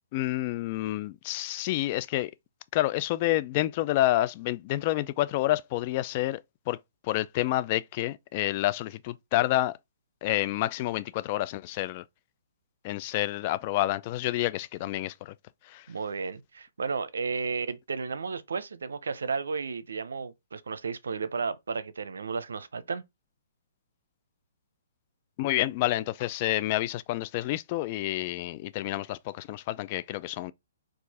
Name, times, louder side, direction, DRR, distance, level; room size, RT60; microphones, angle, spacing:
voice 1, 0.1-2.3 2.7-6.4 6.7-6.8 7.0-9.8 10.2-12.0 12.8-15.3 15.6-15.9 25.4-30.5, left 15 dB, 35° left, 0.3 m, -29 dB
voice 2, 15.9-23.0, right 5 dB, 85° right, 0.7 m, -33 dB
4.6 x 2.5 x 4.1 m
hypercardioid pair, 145°, 0 cm